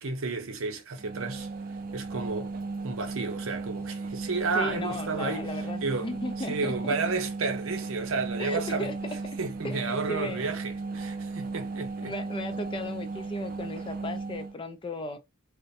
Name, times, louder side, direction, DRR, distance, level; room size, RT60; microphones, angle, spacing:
voice 1, 0.0-1.5 1.9-6.1 6.4-8.9 9.4-12.1, right 4 dB, 80° right, 0.7 m, -32 dB
sound 1, 1.0-14.6, right 3 dB, 45° right, 0.4 m, -36 dB
voice 2, 4.5-7.1 8.4-8.9 9.6-10.5 12.0-15.2, left 2 dB, 25° left, 0.4 m, -36 dB
2.5 x 2.1 x 2.6 m
head